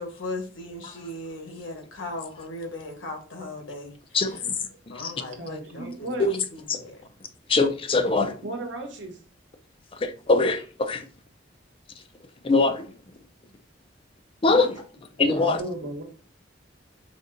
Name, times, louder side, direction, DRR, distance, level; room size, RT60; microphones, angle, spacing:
voice 1, 0.0-3.9 4.2-4.4 4.9-7.0, left 2 dB, 90° left, 1.0 m, -37 dB
voice 2, 4.1-4.5 5.0-5.1 6.2-6.3 7.5-8.3 10.0-11.0 12.4-12.9 14.4-14.8 15.2-15.6, left 3 dB, 30° left, 0.4 m, -22 dB
voice 3, 5.4-6.3 8.4-9.2 15.3-16.0, right 2 dB, 75° right, 1.0 m, -34 dB
5.1 x 2.8 x 2.5 m
head